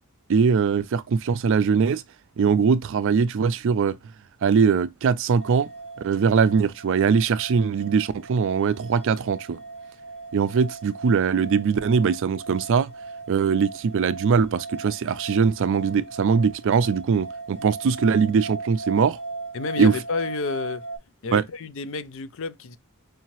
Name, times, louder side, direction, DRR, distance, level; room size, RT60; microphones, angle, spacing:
voice 1, 0.3-2.0 2.4-4.0 4.4-5.7 6.0-9.6 10.3-12.9 13.3-19.2 19.8-19.9 21.3-21.4, right 6 dB, 60° right, 0.4 m, -21 dB
sound 1, 5.4-21.0, right 3 dB, 85° left, 2.2 m, -38 dB
voice 2, 19.5-20.8 21.2-22.8, left 4 dB, 60° left, 0.4 m, -30 dB
4.7 x 2.7 x 2.9 m
head